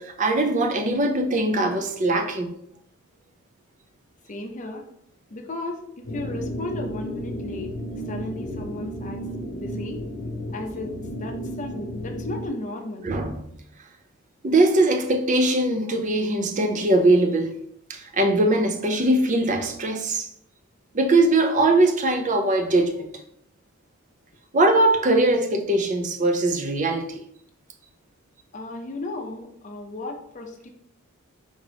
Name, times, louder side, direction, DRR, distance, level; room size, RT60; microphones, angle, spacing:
voice 1, 0.0-2.5 13.0-13.4 14.4-17.5 17.9-20.3 20.9-23.1 24.5-27.2, right 2 dB, 35° right, 0.5 m, -21 dB
voice 2, 4.3-4.8 5.3-7.8 8.1-9.2 9.5-10.0 10.5-10.9 11.2-13.1 28.5-30.7, left 2 dB, 35° left, 0.6 m, -34 dB
sound 1, 6.0-12.5, equal, 75° left, 0.7 m, -33 dB
3.9 x 3.6 x 3.4 m
head